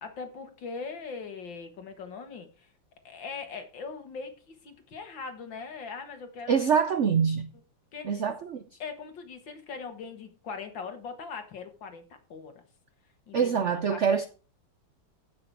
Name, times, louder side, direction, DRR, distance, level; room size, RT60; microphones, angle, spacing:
voice 1, 0.0-2.7 3.0-6.7 7.9-8.2 8.8-12.0 12.3-12.5 13.3-14.0, left 5 dB, 70° left, 2.4 m, -40 dB
voice 2, 6.5-7.5 8.0-8.6 13.3-14.3, right 6 dB, 75° right, 0.6 m, -25 dB
15.0 x 5.9 x 4.8 m
omnidirectional pair, 2.1 m